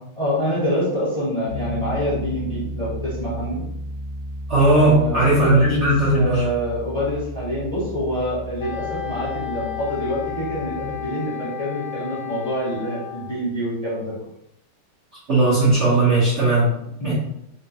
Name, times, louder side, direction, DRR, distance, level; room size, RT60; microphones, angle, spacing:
voice 1, 0.2-3.6 4.7-14.1 17.0-17.1, equal, 35° left, -8 dB, 0.6 m, -26 dB
Piano, 1.5-11.1, equal, 85° right, 1.5 m, -34 dB
voice 2, 4.5-6.4 15.3-16.7 17.0-17.1, right 2 dB, 70° right, -7 dB, 0.6 m, -17 dB
Wind instrument woodwind instrument, 8.6-13.4, left 12 dB, 85° left, 1.5 m, -33 dB
3.7 x 2.2 x 2.8 m, 0.79 s
omnidirectional pair, 2.3 m